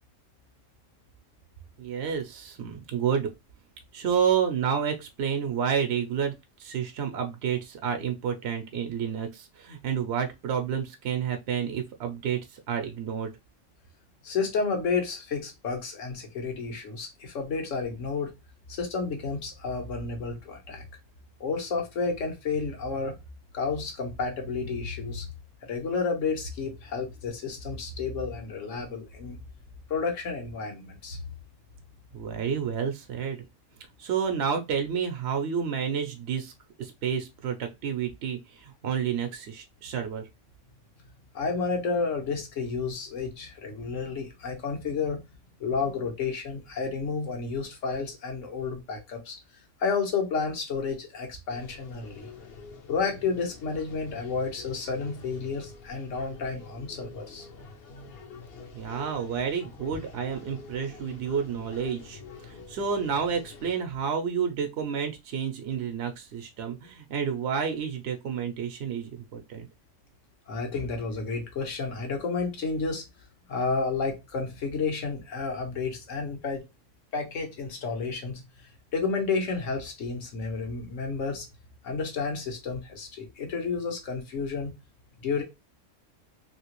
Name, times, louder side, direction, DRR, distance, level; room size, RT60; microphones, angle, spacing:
voice 1, 1.8-3.3 3.9-6.3 6.6-13.3 32.1-33.4 34.0-36.5 36.8-40.2 58.7-69.7, right 7 dB, 65° right, 0.8 m, -30 dB
voice 2, 14.2-18.3 18.7-20.8 21.4-23.1 23.5-25.3 25.6-29.4 29.9-31.2 41.3-45.2 45.6-49.4 49.8-52.3 52.9-57.5 70.5-73.0 73.5-76.6 77.1-81.5 81.8-84.7 85.2-85.4, left 4 dB, 75° left, 1.3 m, -31 dB
sound 1, 51.5-63.7, left 4 dB, 55° left, 0.8 m, -46 dB
3.0 x 2.8 x 2.9 m
omnidirectional pair, 1.3 m